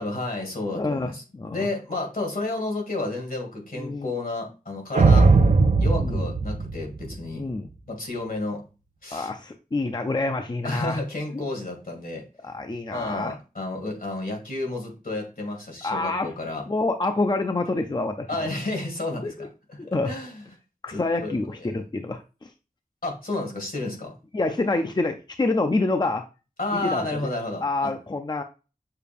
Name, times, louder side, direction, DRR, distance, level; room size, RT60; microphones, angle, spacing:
voice 1, 0.0-1.2 1.5-5.3 5.8-7.4 7.9-8.6 9.0-9.3 10.6-12.2 12.9-16.6 18.3-19.8 20.1-20.4 20.9-21.7 23.0-24.1 26.6-27.9, left 2 dB, 75° left, 1 dB, 1.8 m, -31 dB
voice 2, 0.7-1.7 3.8-4.1 6.0-6.3 7.4-7.7 9.1-11.0 11.3-11.4 12.4-13.3 15.8-16.3 16.7-18.5 19.2-19.5 19.8-20.1 20.8-22.5 24.3-26.2 26.7-27.2 27.6-28.4, left 2 dB, 30° left, 6 dB, 0.4 m, -27 dB
sound 1, 4.9-7.4, right 3 dB, 55° right, 0.4 m, -19 dB
6.6 x 2.3 x 3.4 m, 0.31 s
wide cardioid pair, 65°, 15 cm